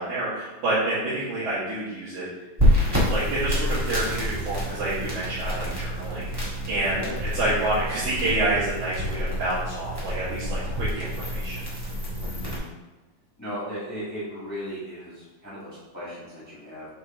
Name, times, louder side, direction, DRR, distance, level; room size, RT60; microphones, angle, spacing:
voice 1, 0.0-2.3 3.1-7.0 7.3-11.6, right 2 dB, 70° right, -13 dB, 3.9 m, -28 dB
sound 1, 2.6-12.6, equal, 25° right, 0.5 m, -27 dB
voice 2, 12.2-12.7 13.4-16.9, equal, 10° left, -9 dB, 1.1 m, -36 dB
8.3 x 3.8 x 3.8 m, 1.1 s
omnidirectional pair, 4.3 m